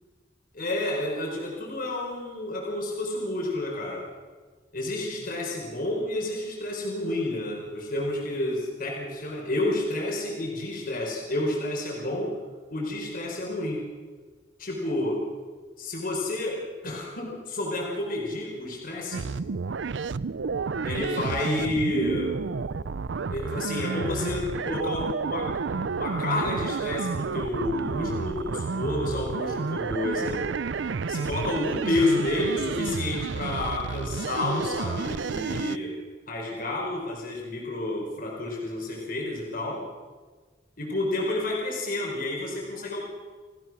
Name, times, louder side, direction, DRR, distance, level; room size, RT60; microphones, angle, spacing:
voice 1, 0.5-4.1 4.7-12.4 12.7-13.8 14.6-15.3 15.8-19.3 20.8-22.4 23.3-30.5 31.1-36.0 36.3-39.8 40.8-43.0, left 1 dB, 50° left, -1 dB, 4.9 m, -30 dB
sound 1, 19.1-35.8, right 4 dB, 85° right, 0.5 m, -31 dB
28.0 x 16.5 x 6.3 m, 1.4 s
head